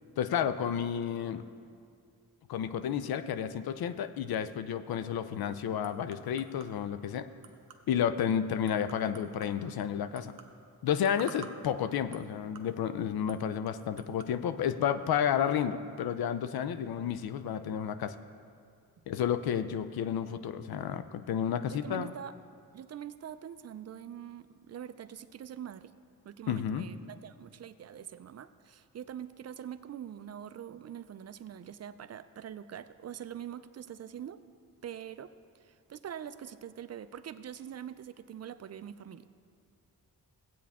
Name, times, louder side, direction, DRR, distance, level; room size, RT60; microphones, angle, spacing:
voice 1, 0.2-1.4 2.5-7.3 7.9-10.3 10.8-18.1 19.1-22.1 26.5-26.9, left 8 dB, 75° left, 12 dB, 0.6 m, -31 dB
sound 1, 4.9-14.4, right 6 dB, 65° right, 0.9 m, -54 dB
voice 2, 21.7-22.3 22.7-25.9 26.2-34.4 34.8-35.3 35.7-39.3, right 9 dB, 45° right, 13 dB, 0.4 m, -44 dB
15.5 x 8.5 x 3.6 m, 2.3 s
cardioid pair, 95°, 37 cm